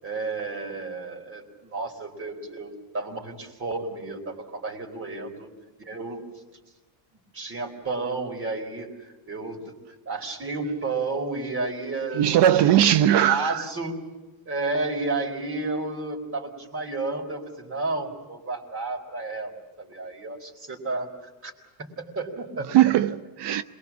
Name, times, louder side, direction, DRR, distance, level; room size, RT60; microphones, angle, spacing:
voice 1, 0.0-5.5 5.8-6.2 7.3-9.6 10.1-12.9 13.2-14.0 14.5-21.5 21.8-22.7, right 3 dB, 30° right, 4.3 m, -32 dB
voice 2, 12.2-13.6 22.7-23.6, right 12 dB, 60° right, 0.9 m, -19 dB
27.5 x 20.5 x 7.3 m
cardioid pair, 130°, 47 cm